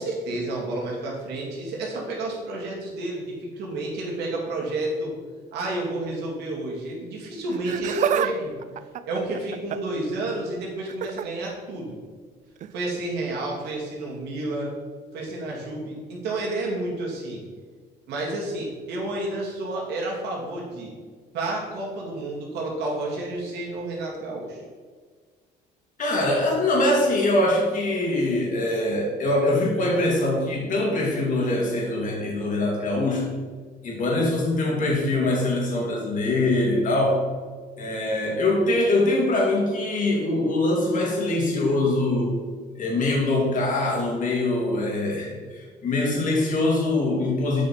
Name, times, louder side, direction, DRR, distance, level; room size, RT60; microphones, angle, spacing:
voice 1, 0.0-5.2 5.5-8.6 9.0-12.0 12.7-14.7 15.1-17.4 18.1-20.9 21.3-24.6, right 2 dB, 80° right, -3 dB, 2.4 m, -30 dB
Laughter, 7.5-8.3 8.6-10.0 10.9-11.3 12.6-12.7 13.7-13.8, right 9 dB, 45° right, 0.4 m, -28 dB
voice 2, 26.0-33.3 33.8-37.2 37.8-42.3 42.8-47.7, left 2 dB, 50° left, -2 dB, 2.4 m, -23 dB
8.0 x 5.3 x 4.3 m, 1.6 s
cardioid pair, 110°, 17 cm